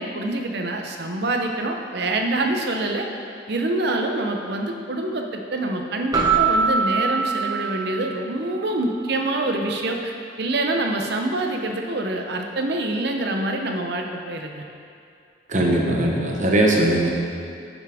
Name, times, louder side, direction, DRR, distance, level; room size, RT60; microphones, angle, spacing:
voice 1, 0.0-3.1 3.5-14.6, right 2 dB, 60° right, 3 dB, 0.7 m, -26 dB
Keyboard (musical), 6.1-8.5, right 5 dB, 20° right, 0.9 m, -23 dB
voice 2, 15.5-17.1, right 1 dB, 40° right, -2 dB, 1.1 m, -19 dB
9.5 x 5.9 x 3.5 m, 2.4 s
head